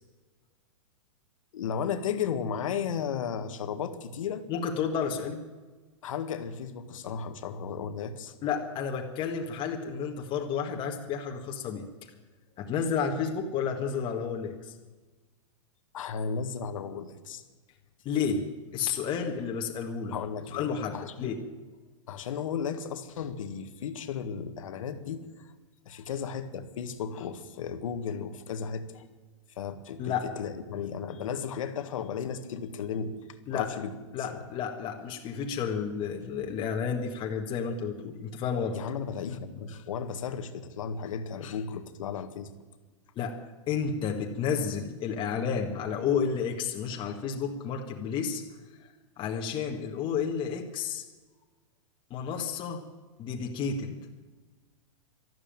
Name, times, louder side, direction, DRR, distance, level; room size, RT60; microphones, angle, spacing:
voice 1, 1.5-4.4 6.0-8.3 15.9-17.4 20.1-21.4 22.1-25.5 25.9-29.1 29.6-33.1 33.5-34.4 38.7-42.5, left 7 dB, 75° left, 9 dB, 1.7 m, -35 dB
voice 2, 4.5-5.4 8.4-11.9 12.6-14.7 18.1-18.4 18.7-20.2 20.5-21.4 30.0-30.3 33.5-33.7 34.1-38.8 43.2-43.4 43.7-48.4 49.2-51.0 52.1-52.8 53.2-54.1, left 6 dB, 30° left, 2 dB, 1.7 m, -31 dB
12.5 x 12.5 x 9.0 m, 1.3 s
hypercardioid pair, 135°, 17 cm